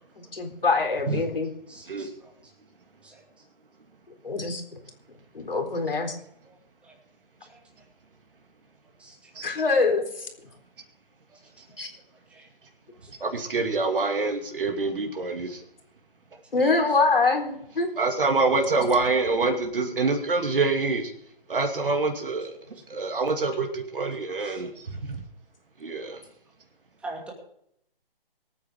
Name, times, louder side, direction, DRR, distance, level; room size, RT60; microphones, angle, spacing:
voice 1, 0.2-1.5 4.2-4.6 5.3-6.2 9.4-10.3 11.8-11.9 16.5-17.9, left 3 dB, 70° left, 3 dB, 4.0 m, -24 dB
voice 2, 1.7-2.3 3.0-3.2 6.5-6.6 6.8-6.9 7.4-7.6 9.0-9.3 10.5-10.6 11.3-11.4 12.3-12.5 13.0-13.1 24.4-24.6 26.1-26.2 27.0-27.3, right 2 dB, 5° right, -2 dB, 2.4 m, -44 dB
voice 3, 13.1-15.6 18.0-25.2 25.8-26.3, right 3 dB, 65° right, 2 dB, 2.6 m, -26 dB
24.0 x 9.1 x 3.7 m, 0.72 s
figure-of-eight pair, 150°, 29 cm